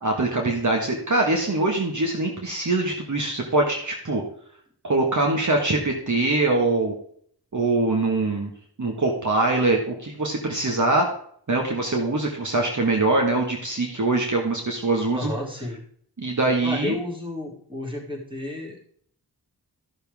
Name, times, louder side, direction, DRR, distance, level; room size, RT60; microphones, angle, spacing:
voice 1, 0.0-4.2 4.8-6.9 7.5-8.5 8.8-11.1 11.5-15.3 16.2-16.9, right 2 dB, 45° right, 1 dB, 1.6 m, -23 dB
voice 2, 15.1-15.8 16.6-18.9, left 1 dB, 10° right, -1 dB, 2.8 m, -32 dB
13.0 x 6.8 x 3.5 m, 0.62 s
wide cardioid pair, 85°, 40 cm